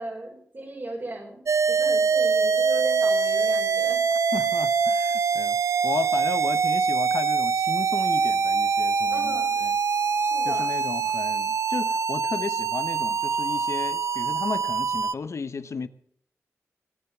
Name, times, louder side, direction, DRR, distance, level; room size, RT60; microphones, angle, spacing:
voice 1, 0.0-1.4 1.7-4.0 9.1-9.6 10.2-10.7, right 2 dB, 50° right, 5.2 m, -36 dB
sound 1, 1.5-15.1, right 5 dB, 70° right, 0.6 m, -24 dB
voice 2, 4.3-5.6 5.8-9.7 10.4-15.9, left 4 dB, 65° left, 0.9 m, -34 dB
19.0 x 8.0 x 7.1 m
cardioid pair, 45°, 5 cm